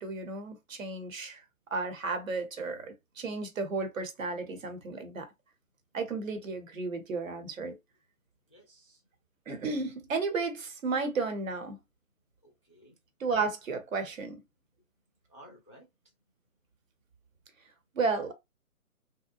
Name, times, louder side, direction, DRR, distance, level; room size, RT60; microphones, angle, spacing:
voice 1, 0.0-1.4 1.7-5.3 5.9-7.7 9.5-11.8 13.2-14.3 17.9-18.3, right 4 dB, 60° right, 1.0 m, -33 dB
voice 2, 8.5-9.0 12.4-13.0 15.3-15.9, right 1 dB, 20° left, 0.4 m, -55 dB
2.8 x 2.0 x 2.4 m
figure-of-eight pair, 145°, 44 cm